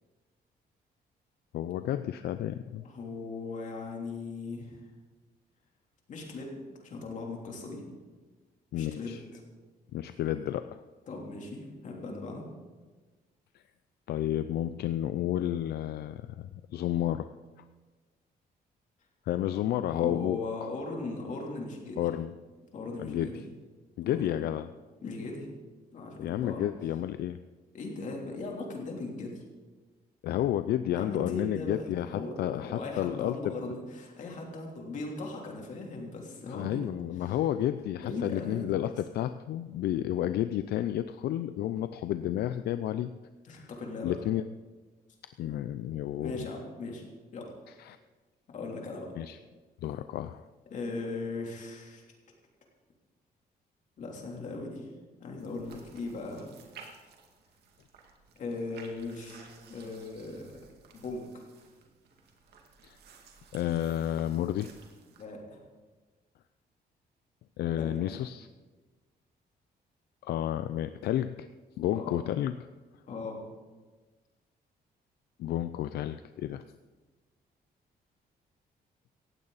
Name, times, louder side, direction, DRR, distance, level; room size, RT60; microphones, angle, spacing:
voice 1, 1.5-2.8 8.7-9.2 9.9-10.8 14.1-17.3 19.3-20.7 22.0-22.3 23.0-23.4 24.0-24.7 26.2-27.4 30.2-33.5 36.5-43.1 43.5-43.7 44.0-44.4 45.4-46.5 47.8-48.0 49.2-49.4 49.8-50.4 62.8-63.0 63.5-64.7 67.6-68.5 70.2-71.5 71.8-72.6 75.4-76.6, left 12 dB, 80° left, 11 dB, 0.5 m, -31 dB
voice 2, 2.8-4.8 6.1-7.8 8.7-9.2 11.1-12.4 19.9-22.1 22.7-23.4 24.0-24.4 25.0-25.5 25.9-26.6 27.7-29.4 31.0-36.8 37.2-37.4 38.0-38.7 43.5-44.1 46.2-47.0 47.3-47.5 48.5-49.1 50.7-52.0 54.0-54.9 55.2-56.5 58.4-60.6 60.9-61.4 65.2-65.6 67.8-68.0 71.9-72.2 73.1-73.4, left 3 dB, 50° left, 0 dB, 3.2 m, -38 dB
sound 1, 55.4-65.2, right 5 dB, 85° right, 2.3 m, -55 dB
18.0 x 15.5 x 4.1 m, 1.3 s
cardioid pair, 175°, 16 cm